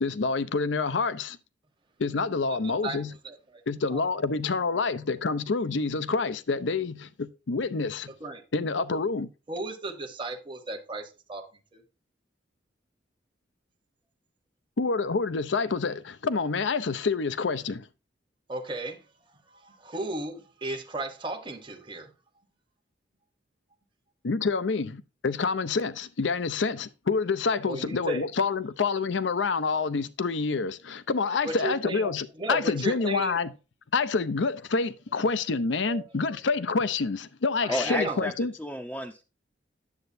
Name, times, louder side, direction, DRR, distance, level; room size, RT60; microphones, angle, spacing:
voice 1, 0.0-1.4 2.0-3.1 3.7-8.1 8.5-9.3 14.8-17.9 24.2-33.5 33.9-38.5, left 4 dB, 75° left, 0.6 m, -27 dB
voice 2, 3.2-3.6 3.9-4.0 8.2-8.4 9.5-11.8 18.5-19.0 19.5-22.1 27.6-28.3 31.4-33.4 35.9-36.0 37.6-38.3, right 2 dB, 25° right, 1.1 m, -35 dB
voice 3, 37.7-38.3 38.6-39.2, left 1 dB, 5° left, 0.6 m, -31 dB
9.6 x 7.8 x 2.7 m
head